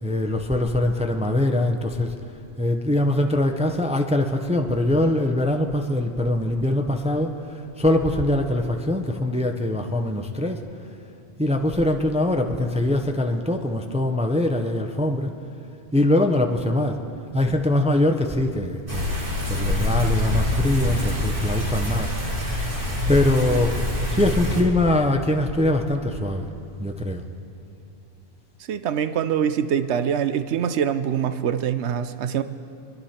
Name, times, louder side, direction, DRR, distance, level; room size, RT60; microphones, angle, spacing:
voice 1, 0.0-2.2 2.6-10.6 11.4-15.3 15.9-17.0 17.3-19.2 19.5-22.1 23.1-23.8 24.1-26.5 26.8-27.2, left 1 dB, 10° right, 4 dB, 0.5 m, -22 dB
sound 1, 18.9-24.6, left 1 dB, 55° right, 2.5 m, -25 dB
voice 2, 28.7-32.4, right 8 dB, 90° right, 11 dB, 1.0 m, -24 dB
25.5 x 10.5 x 4.4 m, 2.7 s
omnidirectional pair, 1.1 m